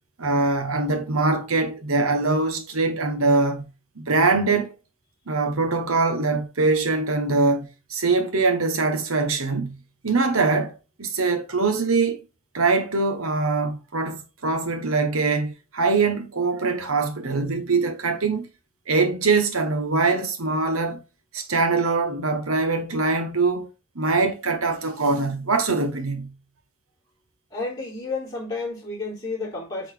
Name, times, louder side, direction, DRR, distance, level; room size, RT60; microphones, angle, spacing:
voice 1, 0.2-3.6 4.0-4.7 5.3-9.8 10.0-12.2 12.5-18.5 18.9-21.0 21.3-23.7 23.9-26.3, right 3 dB, 80° right, 1.4 m, -23 dB
voice 2, 27.5-29.9, left 3 dB, 20° left, 3.9 m, -31 dB
8.3 x 4.2 x 3.8 m
head